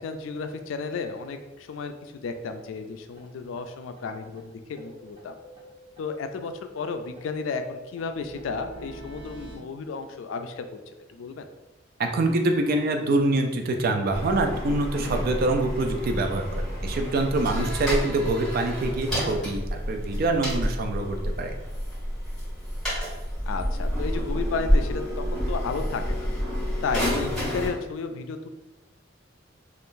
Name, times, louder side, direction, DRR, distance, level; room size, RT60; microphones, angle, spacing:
voice 1, 0.0-5.3 6.0-10.6 11.1-11.5 17.5-17.7 23.5-26.3 26.8-28.4, left 4 dB, 80° left, 8 dB, 0.3 m, -33 dB
sound 1, 3.2-3.3 3.6-3.7 4.0-4.1 4.4-4.5 4.8-6.1 6.4-9.6, right 1 dB, 30° right, 0.7 m, -46 dB
voice 2, 12.0-21.5, right 2 dB, 50° right, 4 dB, 0.4 m, -25 dB
sound 2, 14.1-27.7, equal, 5° left, 1.5 m, -29 dB
2.5 x 2.4 x 3.6 m, 1.1 s
head